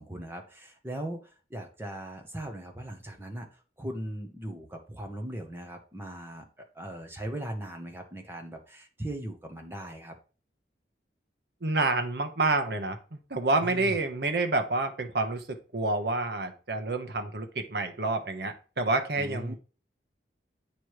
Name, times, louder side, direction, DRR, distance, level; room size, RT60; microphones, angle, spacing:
voice 1, 0.0-10.1 13.6-14.0 19.2-19.6, right 1 dB, 15° right, 3 dB, 0.9 m, -39 dB
voice 2, 11.6-19.6, right 2 dB, 65° right, 6 dB, 1.0 m, -28 dB
8.7 x 3.1 x 4.7 m, 0.36 s
head